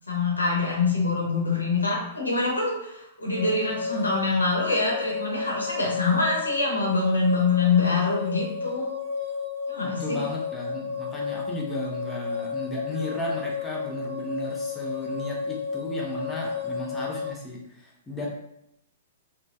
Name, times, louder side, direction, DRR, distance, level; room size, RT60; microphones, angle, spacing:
voice 1, 0.1-8.9 9.7-10.2, left 3 dB, 85° left, -3 dB, 0.9 m, -25 dB
sound 1, 3.3-17.3, left 6 dB, 70° right, 0.6 m, -32 dB
voice 2, 9.8-18.3, left 1 dB, 15° left, -3 dB, 0.7 m, -34 dB
3.1 x 2.1 x 2.6 m, 0.79 s
figure-of-eight pair, 110°, 0 cm